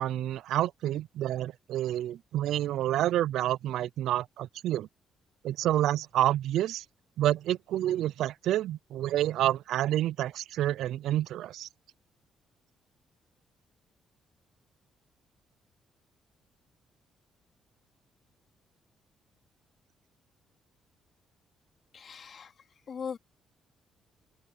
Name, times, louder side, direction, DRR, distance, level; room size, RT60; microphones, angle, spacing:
voice 1, 0.0-4.9 5.4-6.8 7.2-11.7, right 13 dB, 80° right, 0.4 m, -28 dB
voice 2, 21.9-22.5 22.9-23.2, left 6 dB, 50° left, 3.5 m, -39 dB
open air
cardioid pair, 90°, 0 cm